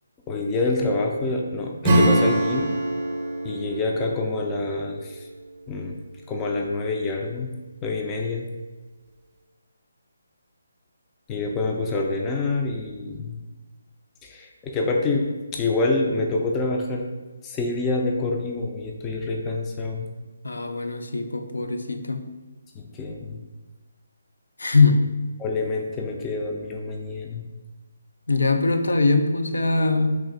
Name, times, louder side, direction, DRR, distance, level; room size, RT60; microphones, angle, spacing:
voice 1, 0.3-2.7 3.4-5.2 5.7-6.0 6.3-7.5 7.8-8.5 11.3-13.4 14.2-17.1 17.4-20.1 22.8-23.4 25.4-27.4, left 2 dB, 15° left, 0 dB, 0.4 m, -26 dB
Acoustic guitar / Strum, 1.8-6.1, right 1 dB, 25° right, 0.6 m, -25 dB
voice 2, 20.4-22.2 24.6-25.0 28.3-30.2, left 3 dB, 80° left, 5 dB, 0.5 m, -21 dB
3.5 x 2.6 x 3.8 m, 1.2 s
figure-of-eight pair, 155°, 0 cm